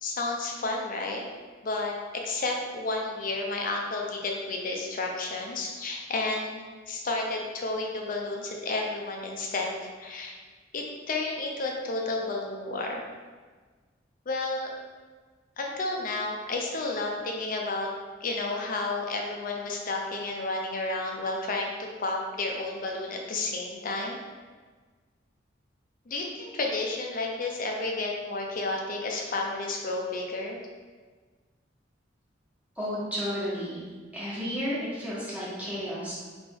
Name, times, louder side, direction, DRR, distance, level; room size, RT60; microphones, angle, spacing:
voice 1, 0.0-1.2 1.6-10.3 10.7-13.0 14.3-14.7 15.6-17.9 18.2-24.2 26.1-30.6, left 2 dB, 45° left, 1 dB, 0.5 m, -31 dB
voice 2, 32.8-33.8 34.1-36.2, equal, 10° right, -9 dB, 1.2 m, -32 dB
3.4 x 2.9 x 3.6 m, 1.4 s
head